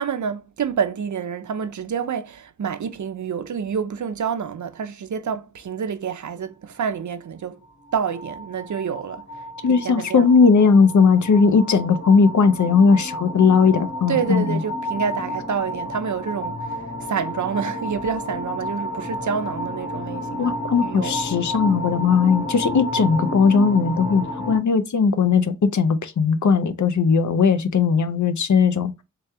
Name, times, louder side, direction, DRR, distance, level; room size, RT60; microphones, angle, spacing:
voice 1, 0.0-7.6 7.9-9.2 9.6-10.3 14.1-16.8 17.1-21.2, right 7 dB, 75° right, 0.5 m, -28 dB
sound 1, 7.6-24.6, left 1 dB, 40° left, 1.7 m, -31 dB
voice 2, 9.6-14.6 20.4-28.9, left 5 dB, 75° left, 0.5 m, -18 dB
3.4 x 3.0 x 3.3 m
wide cardioid pair, 70°, 30 cm